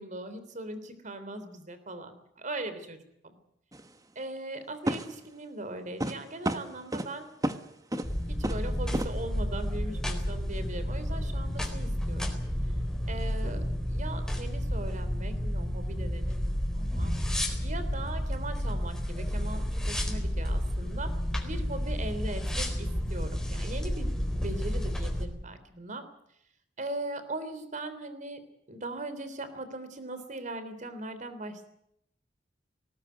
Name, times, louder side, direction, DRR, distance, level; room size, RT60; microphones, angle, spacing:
voice 1, 0.0-2.1 2.4-3.0 3.2-3.4 4.1-7.3 8.4-12.4 13.1-17.1 17.6-21.1 21.4-26.0 26.8-28.4 28.7-31.7, right 2 dB, 45° right, 11 dB, 3.4 m, -39 dB
sound 1, 3.7-3.9 4.9-5.3 6.0-6.2 6.4-7.1 7.4-7.6 7.9-8.1 8.4-8.7 8.9-9.1, right 1 dB, 20° right, 1.4 m, -30 dB
sound 2, 8.0-25.2, equal, 5° left, 4.2 m, -31 dB
19.5 x 19.0 x 9.3 m, 0.74 s
head